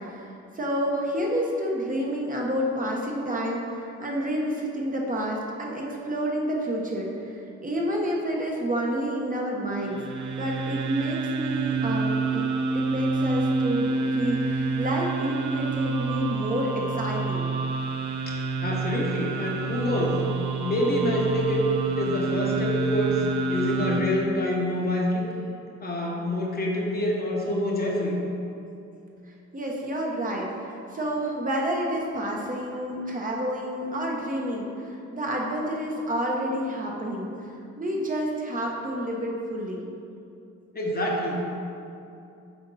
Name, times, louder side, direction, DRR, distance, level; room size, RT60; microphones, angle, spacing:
voice 1, 0.0-10.0 10.4-12.5 12.7-17.5 29.5-39.8, equal, 25° right, -2 dB, 1.1 m, -29 dB
sound 1, 9.7-24.0, right 4 dB, 85° right, 0.6 m, -28 dB
voice 2, 18.3-20.2 20.6-21.7 22.0-25.3 25.8-28.2 40.7-41.4, left 1 dB, 30° left, -2 dB, 1.2 m, -26 dB
8.2 x 4.3 x 4.1 m, 2.6 s
cardioid pair, 90°, 30 cm